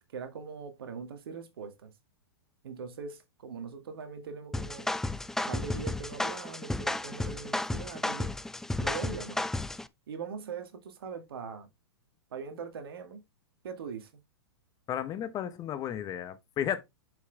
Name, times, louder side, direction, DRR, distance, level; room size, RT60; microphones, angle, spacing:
voice 1, 0.0-1.9 2.6-4.9 5.5-8.3 8.8-9.5 10.1-11.7 12.3-13.2 13.6-14.1, right 5 dB, 65° right, 2.1 m, -41 dB
sound 1, 4.5-9.9, left 2 dB, 5° left, 0.5 m, -33 dB
voice 2, 14.9-16.8, left 10 dB, 30° left, 1.2 m, -33 dB
7.3 x 6.2 x 3.4 m
hypercardioid pair, 110°, 13 cm